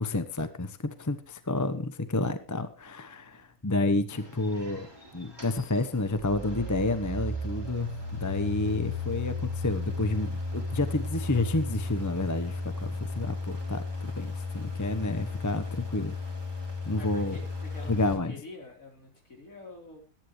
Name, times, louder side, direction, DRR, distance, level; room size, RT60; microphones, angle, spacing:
voice 1, 0.0-4.9 5.1-16.1 16.8-17.4 17.9-18.3, left 2 dB, 15° left, 10 dB, 0.9 m, -30 dB
sound 1, 4.1-18.1, left 3 dB, 15° right, 3.0 m, -35 dB
voice 2, 16.9-20.0, left 2 dB, 65° left, 1 dB, 4.7 m, -47 dB
22.5 x 10.5 x 3.3 m, 0.31 s
omnidirectional pair, 1.6 m